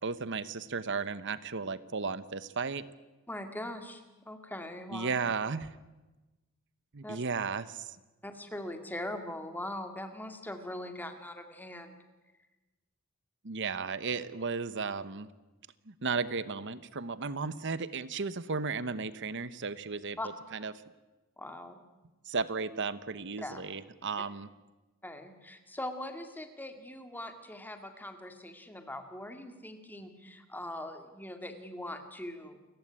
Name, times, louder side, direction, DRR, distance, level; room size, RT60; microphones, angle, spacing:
voice 1, 0.0-2.8 4.9-5.7 6.9-8.0 13.4-15.3 15.9-20.2 20.5-20.7 22.3-24.5, right 4 dB, 55° right, 15 dB, 1.0 m, -34 dB
voice 2, 3.3-5.1 7.0-7.2 8.2-12.0 20.2-20.3 21.4-21.8 23.4-23.6 25.0-32.6, left 1 dB, 10° left, 6 dB, 2.1 m, -41 dB
28.5 x 15.0 x 9.9 m, 1.1 s
head